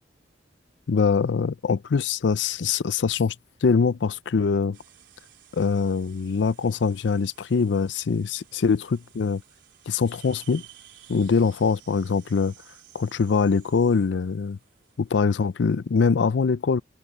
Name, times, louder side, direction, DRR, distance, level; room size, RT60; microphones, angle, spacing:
voice 1, 0.9-3.4 3.6-4.8 5.5-9.4 9.9-10.6 11.1-12.5 12.9-14.6 15.0-16.8, left 5 dB, 85° left, 0.5 m, -23 dB
sound 1, 4.7-16.1, right 12 dB, 85° right, 4.1 m, -54 dB
head